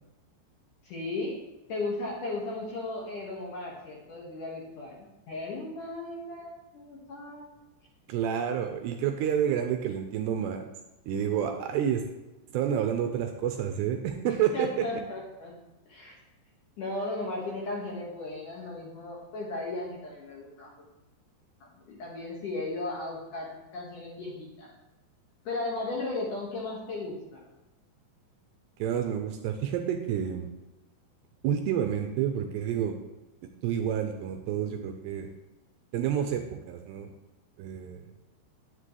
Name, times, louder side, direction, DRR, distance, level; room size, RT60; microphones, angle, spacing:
voice 1, 0.8-1.4 1.7-7.5 14.3-15.5 15.9-16.2 16.8-20.7 21.6-24.7 25.4-27.4, left 2 dB, 55° left, -3 dB, 2.7 m, -36 dB
voice 2, 8.1-10.7 11.1-12.1 12.5-14.9 28.8-30.5 31.4-33.0 33.4-35.3 35.9-37.1 37.6-38.1, right 9 dB, 85° right, 4 dB, 2.6 m, -29 dB
9.9 x 9.8 x 3.3 m, 0.99 s
omnidirectional pair, 5.3 m